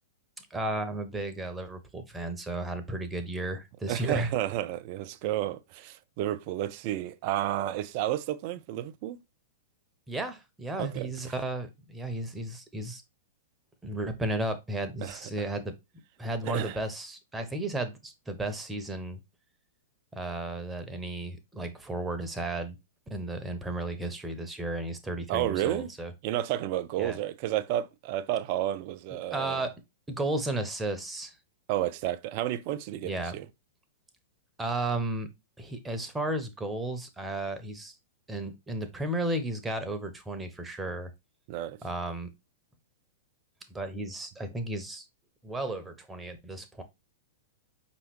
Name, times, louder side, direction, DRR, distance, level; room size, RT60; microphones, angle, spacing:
voice 1, 0.4-4.3 10.1-13.0 13.8-15.7 16.2-19.2 20.1-22.8 23.1-26.1 27.0-27.2 29.3-29.7 30.1-31.4 33.0-33.4 34.6-35.3 35.6-37.9 38.3-41.1 41.8-42.3 43.7-45.1 45.4-46.8, right 2 dB, 10° right, 0.7 m, -34 dB
voice 2, 3.9-9.2 10.8-11.1 15.0-15.2 16.4-16.8 25.3-25.9 26.2-29.6 31.7-33.5 41.5-41.8, right 13 dB, 40° right, 0.4 m, -31 dB
5.3 x 3.0 x 3.1 m
figure-of-eight pair, 100°, 0 cm